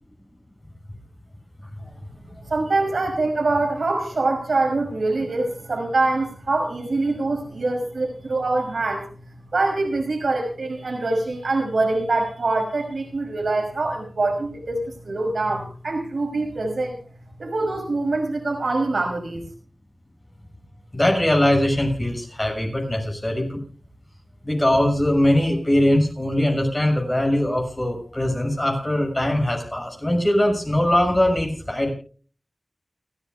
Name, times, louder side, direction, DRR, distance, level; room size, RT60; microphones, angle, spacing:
voice 1, 2.5-9.1 9.5-17.0 17.4-19.4, right 2 dB, 80° right, 3 dB, 6.0 m, -24 dB
voice 2, 20.9-23.6 24.4-31.9, left 1 dB, 25° left, 2 dB, 6.2 m, -21 dB
30.0 x 11.0 x 2.3 m, 0.39 s
cardioid pair, 45°, 0 cm